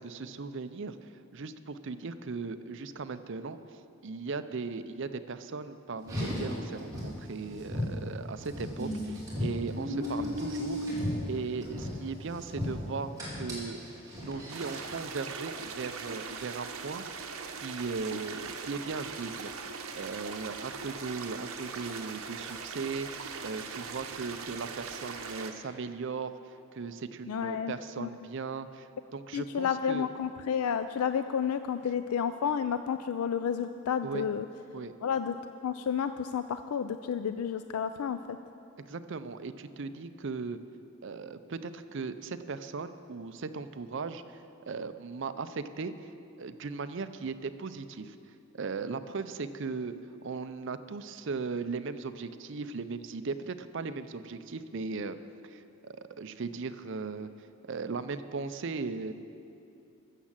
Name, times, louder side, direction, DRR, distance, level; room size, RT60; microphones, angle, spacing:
voice 1, 0.0-3.6 4.0-10.9 11.2-13.8 14.2-17.1 17.6-19.6 20.0-23.1 23.4-26.3 26.7-30.1 34.0-34.3 34.7-34.9 38.9-40.6 41.0-44.2 44.7-45.9 46.4-48.2 48.5-50.0 50.2-55.2 55.4-57.3 57.7-59.1, right 4 dB, 55° right, 11 dB, 0.5 m, -37 dB
Car, 6.0-15.0, left 1 dB, 15° right, 3.2 m, -36 dB
sound 1, 14.5-25.5, right 5 dB, 75° right, 0.9 m, -40 dB
voice 2, 27.3-28.1 29.3-34.5 35.0-35.3 35.6-38.2, left 7 dB, 85° left, 10 dB, 0.4 m, -31 dB
13.5 x 7.3 x 7.3 m, 2.6 s
head